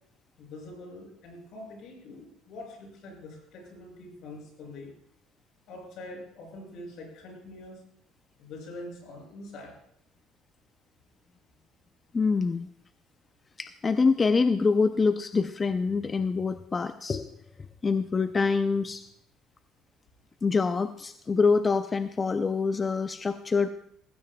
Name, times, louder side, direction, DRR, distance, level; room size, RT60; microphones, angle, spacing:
voice 1, 0.4-4.9 5.7-7.8 8.4-9.8, left 2 dB, 65° left, 0 dB, 6.4 m, -44 dB
voice 2, 12.1-12.7 13.6-17.4 17.8-19.0 20.4-23.7, left 4 dB, 25° left, 10 dB, 0.4 m, -25 dB
17.0 x 15.5 x 2.3 m, 0.71 s
cardioid pair, 100°, 0 cm